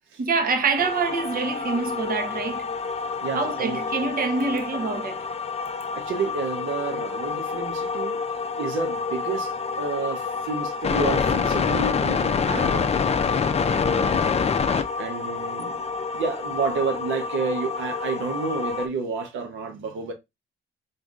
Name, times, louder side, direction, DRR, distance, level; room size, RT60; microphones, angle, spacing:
voice 1, 0.2-2.7 3.3-5.3, right 4 dB, 45° right, 1.0 m, -26 dB
sound 1, 0.8-18.9, left 5 dB, 30° left, 0.5 m, -27 dB
voice 2, 3.2-3.8 5.9-8.2 8.6-12.9 13.6-14.3 15.0-15.9 16.1-20.1, right 4 dB, 80° right, 0.9 m, -30 dB
3.8 x 3.8 x 2.4 m
cardioid pair, 90°, 20 cm